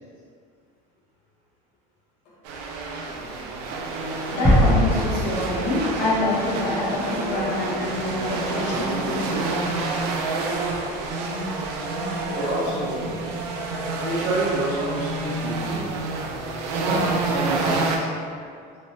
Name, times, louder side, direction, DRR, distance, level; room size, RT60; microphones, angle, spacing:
sound 1, 2.5-18.0, right 3 dB, 85° right, 0.4 m, -28 dB
voice 1, 4.3-9.8, left 2 dB, 60° left, -6 dB, 0.8 m, -26 dB
sound 2, 4.4-7.1, equal, ahead, 0.5 m, -22 dB
voice 2, 12.2-13.3 14.0-16.0 16.8-18.1, right 2 dB, 65° right, -8 dB, 1.2 m, -28 dB
3.0 x 2.0 x 2.6 m, 2.2 s
cardioid pair, 155°, 21 cm